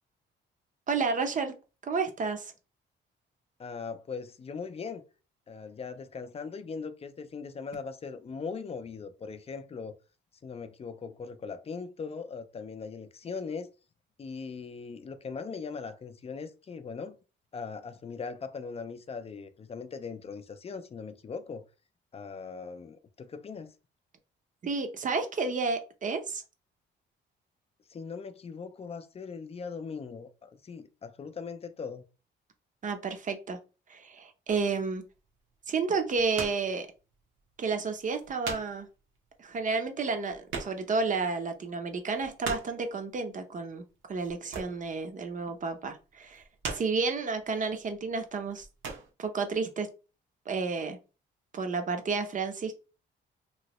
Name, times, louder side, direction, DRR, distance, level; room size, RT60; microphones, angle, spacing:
voice 1, 0.9-1.5 1.8-2.5 24.6-26.4 32.8-33.6 33.9-35.0 35.7-36.9 37.6-38.9 39.4-43.8 44.1-46.4 46.7-48.7 49.2-49.9 50.5-51.0 51.5-52.7, right 4 dB, 40° right, 0.7 m, -31 dB
voice 2, 3.6-5.0 5.5-9.9 10.4-13.7 14.2-17.2 17.5-21.6 22.1-23.7 27.9-32.0, left 5 dB, 30° left, 0.4 m, -40 dB
sound 1, 34.5-34.8 35.9-36.7 37.1-37.2 37.8-37.9 38.1-38.9 39.1-39.2 39.5-39.6 39.8-41.1 41.4-41.5 41.9-42.8 44.2-45.0 45.3-45.6 46.2-47.2 47.8-48.0 48.4-49.1, right 4 dB, 75° right, 1.1 m, -39 dB
3.0 x 2.7 x 3.0 m
cardioid pair, 90°, 20 cm